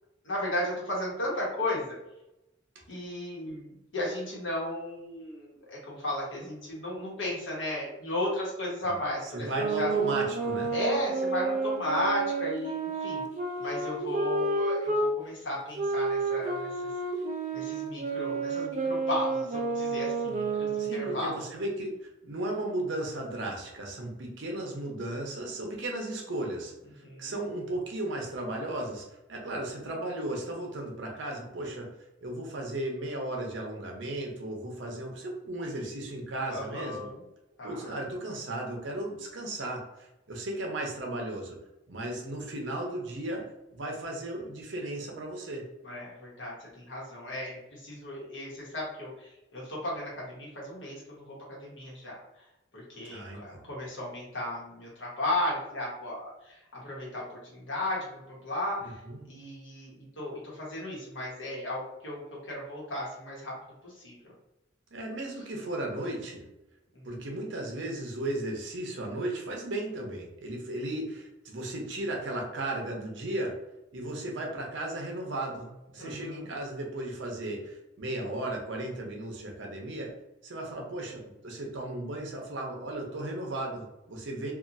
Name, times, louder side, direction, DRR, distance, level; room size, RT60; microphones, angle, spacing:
voice 1, 0.2-2.0 2.9-9.9 10.7-13.2 13.6-16.9 17.5-21.4 27.0-27.4 36.5-37.2 37.6-37.9 45.8-52.2 52.7-59.0 59.3-63.5 63.8-64.3 66.9-67.3 76.0-76.5 80.8-80.9 84.4-84.5, left 1 dB, 80° left, -4 dB, 1.1 m, -35 dB
voice 2, 9.2-10.7 20.8-31.9 32.2-37.1 37.6-41.6 41.9-43.4 43.7-45.6 53.0-53.6 58.8-59.3 64.9-66.4 67.0-73.5 73.9-80.1 80.4-84.5, right 1 dB, 70° right, 1 dB, 0.7 m, -35 dB
sound 1, 9.5-15.1 15.7-21.2, right 3 dB, 40° right, 0.4 m, -30 dB
2.8 x 2.3 x 2.5 m, 0.91 s
head